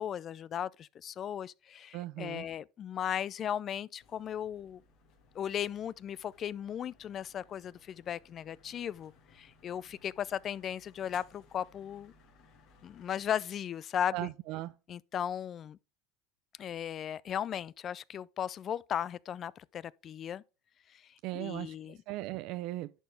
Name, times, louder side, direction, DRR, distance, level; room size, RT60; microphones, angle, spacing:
voice 1, 0.0-4.8 5.3-12.1 12.8-14.3 14.9-15.8 16.6-20.4 20.9-21.0 21.3-22.0, left 9 dB, 35° left, 0.4 m, -36 dB
voice 2, 1.9-2.5 14.1-14.7 21.2-22.9, right 16 dB, 60° right, 0.4 m, -38 dB
sound 1, 4.0-13.3, left 3 dB, 55° left, 2.3 m, -63 dB
11.0 x 4.3 x 3.3 m
supercardioid pair, 120°, 0 cm